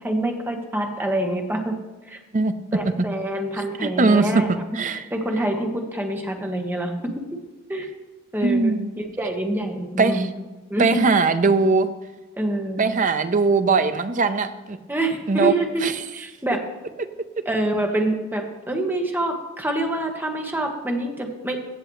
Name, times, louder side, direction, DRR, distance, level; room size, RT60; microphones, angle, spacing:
voice 1, 0.0-1.7 2.1-2.2 2.7-4.5 5.1-7.4 7.7-7.9 8.3-10.3 10.7-11.0 12.4-12.8 14.9-15.9 16.1-16.6 17.4-21.6, right 1 dB, 10° right, 2 dB, 1.2 m, -26 dB
voice 2, 3.8-5.0 8.4-8.9 10.0-10.2 10.8-11.9 12.8-14.8 15.3-15.5 15.8-15.9, right 4 dB, 40° right, 11 dB, 0.6 m, -20 dB
15.5 x 6.9 x 3.1 m, 1.2 s
head